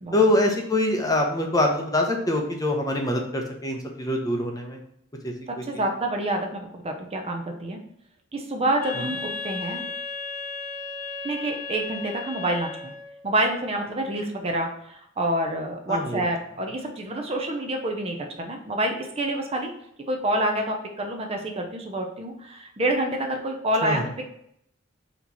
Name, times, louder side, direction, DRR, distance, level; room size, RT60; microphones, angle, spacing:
voice 1, 0.1-4.8 5.2-5.6 15.9-16.2 23.8-24.0, left 1 dB, 20° left, 2 dB, 0.6 m, -24 dB
voice 2, 5.5-7.8 8.3-9.8 11.2-12.9 13.2-19.7 20.1-24.0, right 1 dB, 30° right, 3 dB, 0.5 m, -27 dB
Wind instrument woodwind instrument, 8.8-13.2, left 3 dB, 40° left, 1.0 m, -35 dB
4.3 x 2.9 x 4.0 m, 0.72 s
head